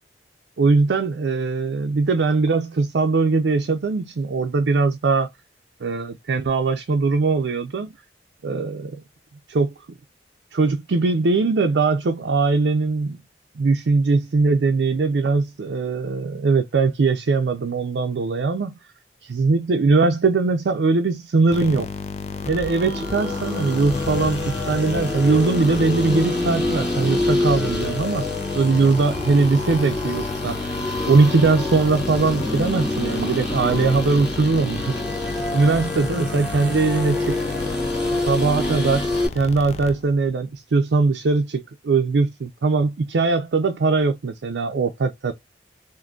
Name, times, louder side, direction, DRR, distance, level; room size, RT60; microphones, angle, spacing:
voice 1, 0.6-5.3 5.8-7.9 8.4-9.0 9.5-9.7 10.5-13.2 13.6-18.8 19.2-21.9 22.5-28.3 28.5-30.7 31.1-35.0 35.5-37.4 38.3-39.1 39.3-45.3, right 4 dB, 80° right, 0.5 m, -20 dB
sound 1, 21.5-40.3, left 4 dB, 40° left, 0.4 m, -33 dB
sound 2, 22.4-39.3, left 2 dB, 5° right, 1.9 m, -27 dB
3.7 x 2.5 x 2.3 m
head